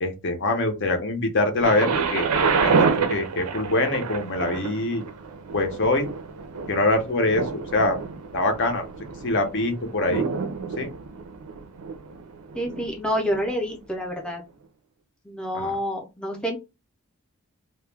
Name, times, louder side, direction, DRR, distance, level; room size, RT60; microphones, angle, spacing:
voice 1, 0.0-2.3 2.6-5.0 5.5-6.1 6.7-8.0 8.3-8.8 9.2-10.3 10.8-10.9 15.5-15.7, left 2 dB, 55° left, 0.6 m, -24 dB
Thunder, 1.6-13.5 14.2-14.3, right 5 dB, 85° right, 0.4 m, -28 dB
voice 2, 12.5-14.4 15.2-16.6, equal, 5° left, 0.5 m, -28 dB
2.2 x 2.1 x 3.2 m
head